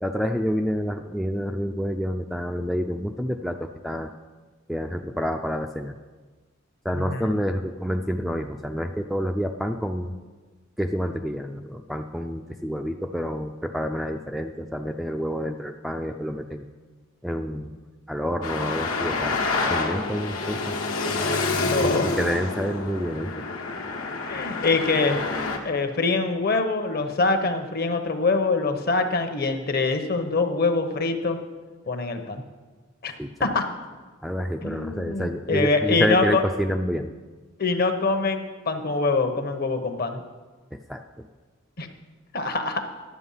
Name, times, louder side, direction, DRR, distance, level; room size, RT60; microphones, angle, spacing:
voice 1, 0.0-4.1 4.7-6.0 6.8-10.1 10.8-16.7 17.2-17.7 18.1-19.4 19.7-20.7 21.8-23.4 33.1-33.5 34.2-37.1 40.7-41.3, equal, ahead, 4 dB, 0.3 m, -28 dB
voice 2, 6.9-7.3 21.6-22.1 24.2-25.2 25.6-31.4 31.9-32.4 33.0-33.1 33.4-33.6 34.6-36.4 37.6-40.2 41.8-41.9 42.3-42.8, left 3 dB, 45° left, 7 dB, 0.9 m, -24 dB
Traffic noise roadway noise, 18.4-25.6, left 3 dB, 85° left, 1.3 m, -28 dB
11.5 x 7.9 x 5.6 m, 1.3 s
head